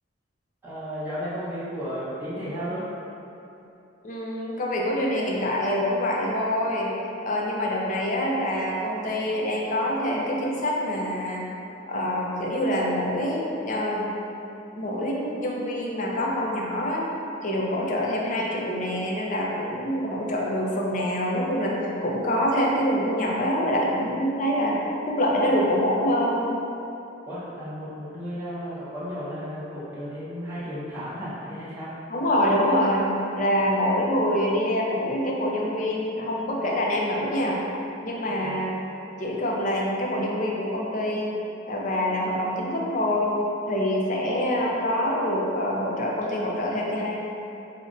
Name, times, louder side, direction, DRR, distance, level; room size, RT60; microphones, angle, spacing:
voice 1, 0.6-2.8 27.3-31.9 38.3-38.6, equal, 10° right, -12 dB, 0.9 m, -34 dB
voice 2, 4.0-6.9 7.2-11.5 11.9-14.1 14.8-17.1 17.4-24.8 25.1-26.4 32.1-37.6 38.0-38.8 39.2-41.4 41.7-43.3 43.7-47.2, equal, 40° left, -2 dB, 0.4 m, -25 dB
5.0 x 2.1 x 2.5 m, 2.8 s
head